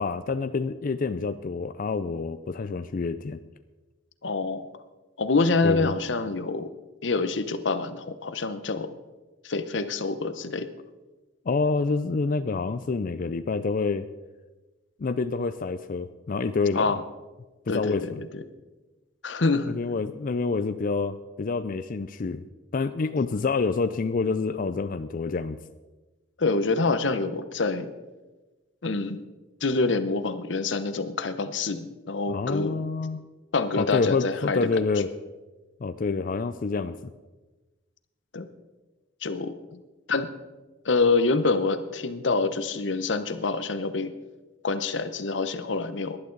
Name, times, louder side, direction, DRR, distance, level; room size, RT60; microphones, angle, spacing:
voice 1, 0.0-3.4 5.6-5.9 11.5-14.1 15.0-16.9 17.7-18.2 19.7-22.4 22.7-25.6 32.3-33.3 33.7-35.1 35.8-37.1, left 4 dB, 45° left, 11 dB, 0.4 m, -27 dB
voice 2, 4.2-4.7 5.2-6.7 7.0-8.9 9.4-10.7 16.7-17.0 17.7-18.4 19.2-19.7 26.4-27.9 28.8-29.2 29.6-32.8 33.5-34.8 38.3-38.5 39.2-39.5 40.1-40.3 40.8-44.1 44.6-46.2, left 3 dB, 65° left, 11 dB, 0.9 m, -26 dB
18.5 x 11.0 x 3.9 m, 1.2 s
head